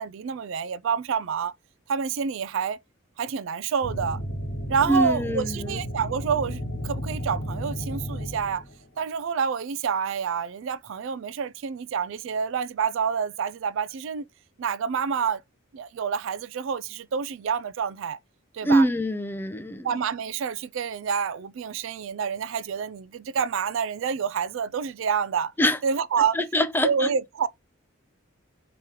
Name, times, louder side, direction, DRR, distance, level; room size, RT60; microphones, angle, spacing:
voice 1, 0.0-1.5 1.9-2.8 3.2-4.2 4.7-8.6 9.0-14.3 14.6-15.4 15.7-18.2 18.5-18.9 19.8-25.5 25.8-26.4 26.8-27.5, right 6 dB, 60° right, 0.3 m, -28 dB
sound 1, 3.8-8.9, equal, 50° left, 1.2 m, -33 dB
voice 2, 4.9-5.8 18.6-20.0 25.6-25.8 26.3-27.1, equal, 10° left, 0.4 m, -24 dB
4.6 x 2.9 x 3.7 m
head